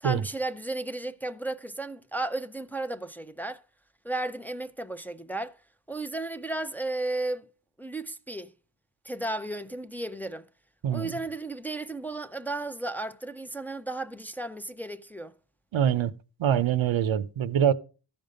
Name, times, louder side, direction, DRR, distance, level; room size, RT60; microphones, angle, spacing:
voice 1, 0.0-3.6 4.0-5.6 5.9-7.5 7.8-8.5 9.0-10.5 10.9-15.3, right 2 dB, 5° left, 0.5 m, -34 dB
voice 2, 15.7-16.1 16.4-17.7, right 9 dB, 85° right, 0.8 m, -24 dB
13.5 x 5.3 x 5.1 m
wide cardioid pair, 90°, 45 cm